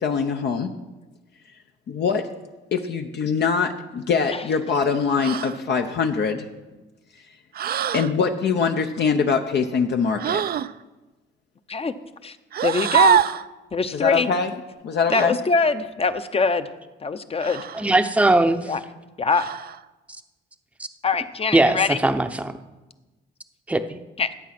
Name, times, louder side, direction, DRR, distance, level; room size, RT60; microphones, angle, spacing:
voice 1, 0.0-0.7 1.9-2.3 2.7-6.4 7.9-10.4 13.9-14.5 14.8-15.4, left 5 dB, 60° left, 4 dB, 0.9 m, -23 dB
sound 1, 5.2-5.6 7.5-8.1 10.2-10.7 12.5-13.5 15.1-15.3 17.4-17.9 19.3-19.8, right 9 dB, 50° right, 0.5 m, -23 dB
voice 2, 12.6-13.2 13.7-14.3 15.1-16.7 17.0-17.6 18.7-18.8 19.2-19.5 21.0-22.0 24.2-24.3, left 4 dB, 30° left, 11 dB, 0.8 m, -23 dB
voice 3, 17.8-18.6 21.5-22.5 23.7-24.0, right 2 dB, 5° right, 8 dB, 0.7 m, -19 dB
12.5 x 8.3 x 6.0 m, 1.1 s
cardioid pair, 90°, 20 cm